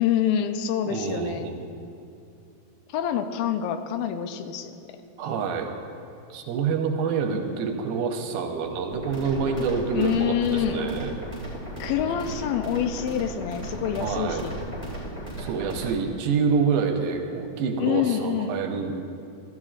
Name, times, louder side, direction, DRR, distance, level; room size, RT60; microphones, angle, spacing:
voice 1, 0.0-1.5 2.9-4.8 9.9-10.9 11.8-14.6 17.8-18.6, left 9 dB, 85° left, 8 dB, 2.4 m, -26 dB
voice 2, 0.9-1.6 5.2-5.7 6.3-11.1 14.0-14.4 15.4-18.9, right 5 dB, 85° right, 4 dB, 2.6 m, -27 dB
sound 1, 8.9-15.9, right 1 dB, 15° left, 1.8 m, -36 dB
15.0 x 12.0 x 2.4 m, 2.6 s
omnidirectional pair, 4.1 m